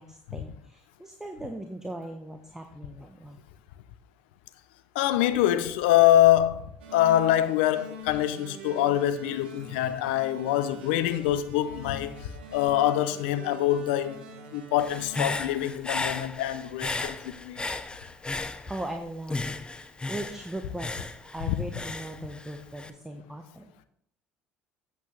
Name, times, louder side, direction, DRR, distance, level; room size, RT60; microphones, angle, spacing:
voice 1, 0.0-3.4 18.3-19.8 20.1-23.7, right 1 dB, 10° right, 1.1 m, -39 dB
voice 2, 4.9-14.2 14.5-17.6 21.5-21.6, left 12 dB, 80° left, 0.7 m, -24 dB
sound 1, 6.8-15.3, right 1 dB, 90° right, 1.3 m, -44 dB
Human voice / Breathing, 14.8-19.0 19.3-22.9, left 3 dB, 15° left, 0.8 m, -35 dB
8.3 x 8.2 x 3.3 m
hypercardioid pair, 70°, 6 cm